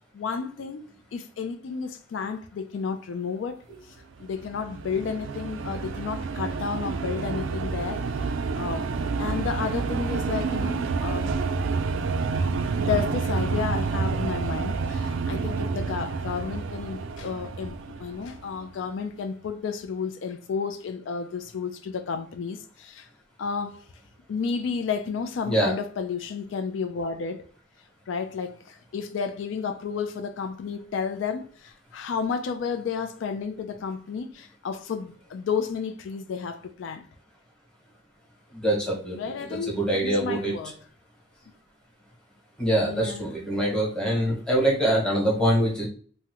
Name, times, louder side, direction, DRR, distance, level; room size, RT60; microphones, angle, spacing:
voice 1, 0.1-0.8 1.1-8.9 9.2-11.4 12.8-23.1 23.4-23.8 24.3-27.4 28.1-37.1 39.1-40.8 42.9-43.3, left 6 dB, 75° left, 0.4 m, -32 dB
sound 1, 4.2-18.7, right 4 dB, 85° right, 0.3 m, -29 dB
voice 2, 25.4-25.8 38.5-39.2 39.7-40.5 42.6-45.9, right 1 dB, 5° left, 1.1 m, -24 dB
3.5 x 2.1 x 2.9 m
head